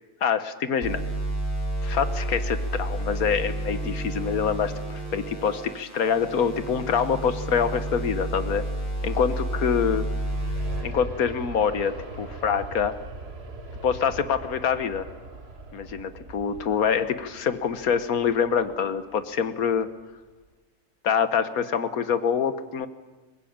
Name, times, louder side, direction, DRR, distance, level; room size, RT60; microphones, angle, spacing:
voice 1, 0.2-1.0 1.8-8.6 9.0-10.1 10.8-12.9 13.8-15.1 15.7-19.9 21.0-22.9, left 7 dB, 75° left, 11 dB, 1.7 m, -25 dB
sound 1, 0.8-10.8, right 1 dB, 30° left, 5.9 m, -30 dB
Aircraft, 9.5-20.0 20.4-20.5, right 2 dB, 45° right, 2.2 m, -42 dB
23.0 x 20.5 x 8.8 m, 1.2 s
omnidirectional pair, 1.6 m